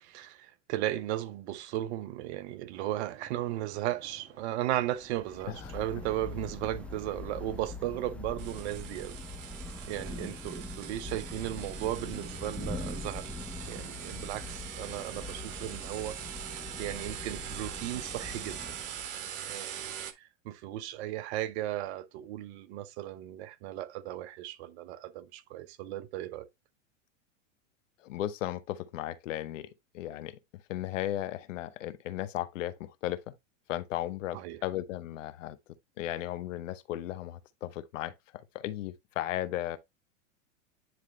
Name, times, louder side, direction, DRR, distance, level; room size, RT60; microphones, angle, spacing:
voice 1, 0.0-9.2 9.9-13.3 13.7-18.8 19.5-26.5 34.3-34.6, right 14 dB, 55° right, 0.8 m, -36 dB
sound 1, 2.7-7.8, right 6 dB, 35° right, 1.8 m, -56 dB
Thunder / Rain, 5.0-19.3, left 2 dB, 5° left, 0.4 m, -42 dB
voice 2, 5.5-5.8 28.0-29.7 29.9-30.4 30.7-33.2 33.7-35.6 36.0-39.8, left 13 dB, 75° left, 0.9 m, -35 dB
sound 2, 8.4-20.1, right 9 dB, 80° right, 1.1 m, -42 dB
9.6 x 3.2 x 3.1 m
hypercardioid pair, 120°, 38 cm